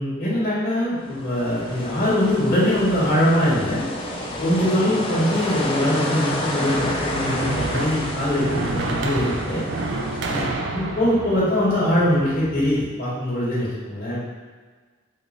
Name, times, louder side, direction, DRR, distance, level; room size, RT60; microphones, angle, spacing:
voice 1, 0.0-3.8 4.4-9.6 10.3-14.2, left 1 dB, 50° left, -11 dB, 1.5 m, -22 dB
sound 1, 1.0-10.4, left 1 dB, 25° left, 0.4 m, -30 dB
sound 2, 6.7-12.9, right 3 dB, 60° right, 0.3 m, -29 dB
4.8 x 2.1 x 2.4 m, 1.5 s
head